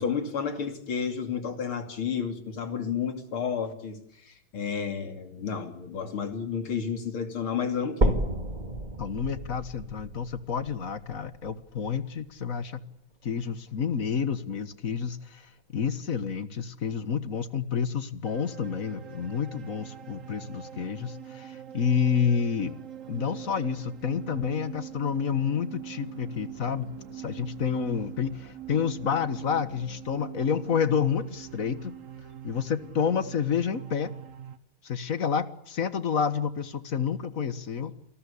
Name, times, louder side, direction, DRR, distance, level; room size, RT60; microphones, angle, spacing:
voice 1, 0.0-8.2, left 6 dB, 90° left, 7 dB, 3.7 m, -31 dB
sound 1, 8.0-12.0 12.6-12.7 13.2-13.3 13.7-13.8 14.6-14.7, right 1 dB, 20° right, 2.7 m, -31 dB
voice 2, 9.0-12.8 13.2-22.8 23.1-32.0 32.4-34.1 34.8-37.9, left 7 dB, 45° left, 13 dB, 1.7 m, -29 dB
sound 2, 18.2-34.6, right 10 dB, 45° right, 1.5 m, -43 dB
28.0 x 19.5 x 8.5 m, 0.72 s
omnidirectional pair, 2.2 m